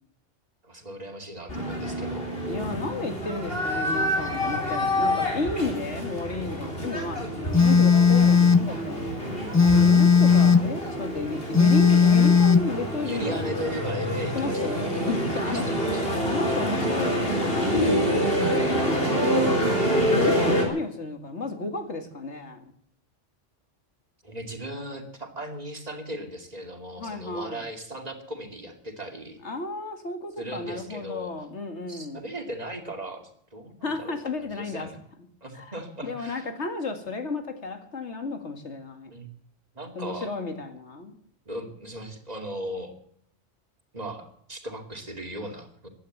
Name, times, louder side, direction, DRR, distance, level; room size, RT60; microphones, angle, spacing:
voice 1, 0.6-2.3 13.0-15.0 15.3-16.2 24.2-29.4 30.4-31.3 31.9-33.2 33.5-35.0 35.4-36.5 39.1-39.3 39.7-40.3 41.5-43.0 43.9-45.9, right 1 dB, 35° right, 2.7 m, -37 dB
sound 1, 1.5-20.6, equal, 50° left, 4.2 m, -27 dB
voice 2, 2.5-7.3 7.6-9.2 9.6-13.4 14.3-15.8 16.2-19.5 20.1-22.7 27.0-27.6 29.4-32.2 33.8-34.9 35.5-35.7 36.0-39.1 40.0-41.2, left 3 dB, 65° left, 2.4 m, -33 dB
Telephone, 7.5-8.7 9.5-10.7 11.5-12.7, left 5 dB, 20° left, 0.6 m, -17 dB
15.5 x 11.5 x 7.9 m
omnidirectional pair, 1.2 m